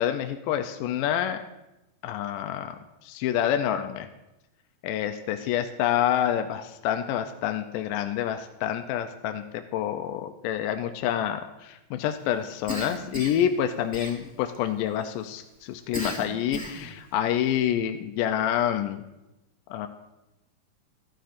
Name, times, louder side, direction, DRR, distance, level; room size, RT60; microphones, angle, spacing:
voice 1, 0.0-1.4 2.0-2.8 3.0-4.1 4.8-9.4 9.7-19.1 19.7-19.9, left 10 dB, 85° left, 6 dB, 2.1 m, -27 dB
Cough, 12.7-13.5 13.9-14.6 15.9-16.9, left 1 dB, 10° right, 1.6 m, -35 dB
14.5 x 11.5 x 2.5 m, 0.97 s
omnidirectional pair, 3.8 m